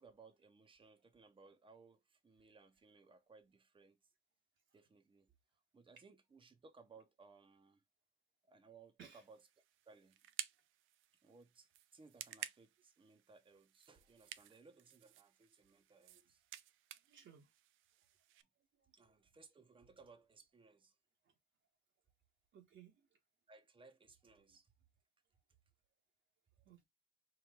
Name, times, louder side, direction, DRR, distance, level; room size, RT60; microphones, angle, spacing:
voice 1, 0.0-4.0 4.7-5.3 5.7-7.8 8.5-9.4 9.9-10.2 11.2-16.4 19.0-20.9 23.5-24.7, right 4 dB, 25° right, 0.9 m, -63 dB
sound 1, 9.2-18.4, right 12 dB, 90° right, 0.4 m, -53 dB
voice 2, 17.1-17.5 18.8-19.0 21.2-21.3 22.5-23.1 24.5-24.6 26.6-26.9, right 8 dB, 70° right, 1.4 m, -60 dB
4.7 x 2.6 x 3.6 m
cardioid pair, 90°, 20 cm